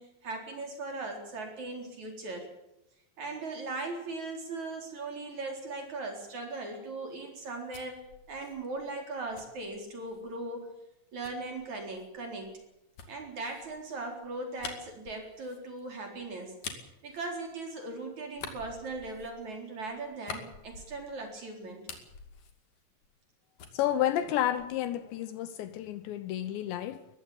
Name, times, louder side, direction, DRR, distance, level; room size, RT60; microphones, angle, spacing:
voice 1, 0.0-2.5 3.2-10.7 11.1-12.5 13.1-16.6 17.0-21.8, right 3 dB, 40° right, 4.9 m, -39 dB
sound 1, 7.3-10.3 11.2-17.9 18.3-21.3 21.6-23.3 23.6-24.9, left 6 dB, 45° left, 3.3 m, -48 dB
voice 2, 23.7-27.1, left 11 dB, 75° left, 3.0 m, -31 dB
22.0 x 15.0 x 8.6 m
omnidirectional pair, 5.6 m